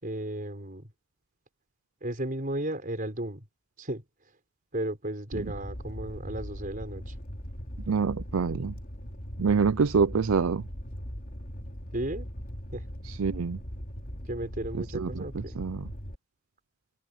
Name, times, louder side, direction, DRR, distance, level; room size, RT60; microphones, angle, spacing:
voice 1, 0.0-0.9 2.0-3.4 3.8-4.0 4.7-7.2 11.9-12.3 12.7-12.9 14.3-15.6, right 1 dB, 40° right, 5.4 m, -34 dB
Fire, 5.3-16.1, equal, 45° left, 3.4 m, -40 dB
voice 2, 7.9-8.7 9.4-10.6 13.2-13.6 14.7-15.9, right 5 dB, 90° right, 0.5 m, -26 dB
head